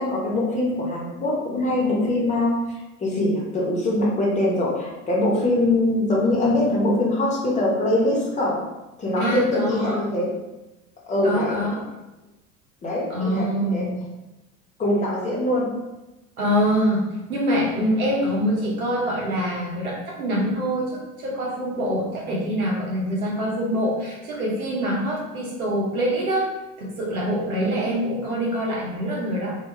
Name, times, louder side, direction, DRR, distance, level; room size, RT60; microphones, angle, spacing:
voice 1, 0.0-2.5 3.0-8.6 9.0-10.3 11.1-11.6 12.8-13.8 14.8-15.7 27.6-27.8, left 1 dB, 15° left, -4 dB, 0.6 m, -23 dB
voice 2, 9.2-10.0 11.2-11.9 13.1-13.9 16.4-17.0 17.3-26.5 26.8-29.6, equal, 75° right, -3 dB, 0.9 m, -25 dB
2.2 x 2.2 x 3.0 m, 1.0 s
figure-of-eight pair, 75°, 43 cm